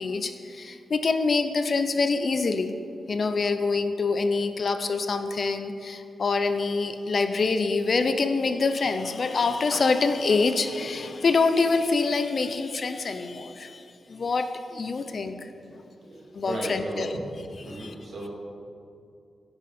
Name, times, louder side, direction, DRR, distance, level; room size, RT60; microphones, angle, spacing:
voice 1, 0.0-2.7 3.1-15.5 16.3-17.2 17.4-18.0 18.2-18.3, left 4 dB, 40° left, 9 dB, 0.6 m, -26 dB
voice 2, 16.0-17.0 17.6-18.3, right 1 dB, 50° right, -4 dB, 3.1 m, -35 dB
15.0 x 10.5 x 4.3 m, 2.6 s
wide cardioid pair, 175°, 0 cm